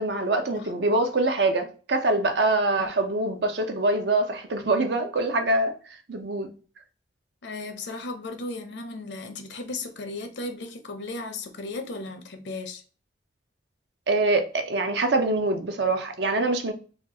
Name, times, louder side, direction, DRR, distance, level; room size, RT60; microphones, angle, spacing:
voice 1, 0.0-6.5 14.1-16.7, right 2 dB, 65° right, 0.7 m, -24 dB
voice 2, 7.4-12.8, left 2 dB, 70° left, 0.7 m, -36 dB
4.2 x 2.4 x 2.9 m
head